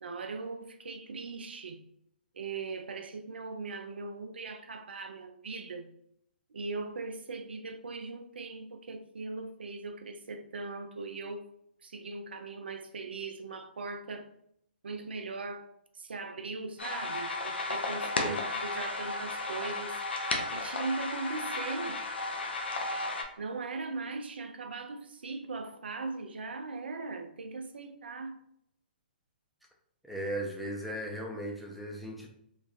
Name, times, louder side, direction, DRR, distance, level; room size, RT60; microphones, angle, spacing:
voice 1, 0.0-1.8 2.3-5.9 6.5-11.5 11.8-14.3 14.8-15.7 15.9-20.0 20.5-22.0 23.4-28.4, right 3 dB, 75° right, 0.4 m, -39 dB
sound 1, 16.8-23.2, left 2 dB, 80° left, 0.5 m, -34 dB
voice 2, 30.0-32.3, right 1 dB, ahead, 0.5 m, -37 dB
3.1 x 2.1 x 2.5 m
figure-of-eight pair, 130°, 6 cm